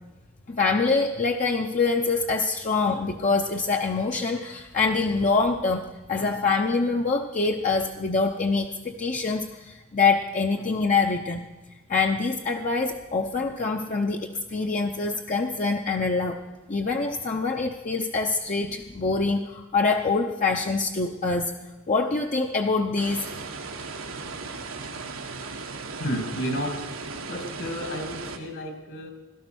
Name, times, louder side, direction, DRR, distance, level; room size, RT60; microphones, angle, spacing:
voice 1, 0.5-11.4 11.9-16.4 16.7-21.5 21.9-23.3, left 4 dB, 40° left, 2 dB, 0.8 m, -25 dB
sound 1, 23.0-28.4, right 4 dB, 90° right, 1.7 m, -36 dB
voice 2, 26.0-29.1, equal, 65° left, 6 dB, 2.6 m, -32 dB
17.0 x 12.5 x 6.3 m, 1.2 s
head